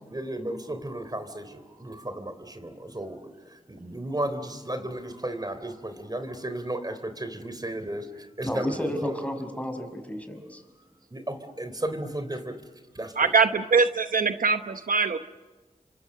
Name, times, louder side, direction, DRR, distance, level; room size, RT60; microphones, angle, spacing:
voice 1, 0.1-3.2 3.7-9.1 11.1-12.6 12.9-13.3, right 1 dB, 25° right, 8 dB, 3.5 m, -34 dB
voice 2, 8.4-10.6, equal, 10° left, 6 dB, 5.8 m, -31 dB
voice 3, 13.2-15.2, right 4 dB, 75° right, 9 dB, 0.9 m, -22 dB
28.5 x 25.0 x 6.6 m, 1.2 s
cardioid pair, 40°, 14 cm